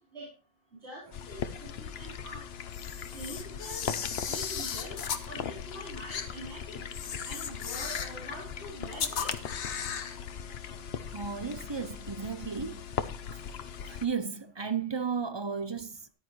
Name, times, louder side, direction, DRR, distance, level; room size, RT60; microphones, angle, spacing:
voice 1, 0.8-2.4 3.1-5.0 5.2-6.8 7.2-9.3, right 1 dB, 75° right, 4.3 m, -44 dB
sound 1, 1.1-14.1, left 7 dB, 65° left, 1.0 m, -39 dB
Camera, 2.7-5.3 6.1-6.3 6.9-8.2 8.9-10.2, left 7 dB, 80° left, 1.2 m, -36 dB
voice 2, 11.1-12.9 13.3-13.4 13.8-16.1, right 6 dB, 35° right, 0.5 m, -34 dB
14.0 x 10.5 x 3.1 m
omnidirectional pair, 1.1 m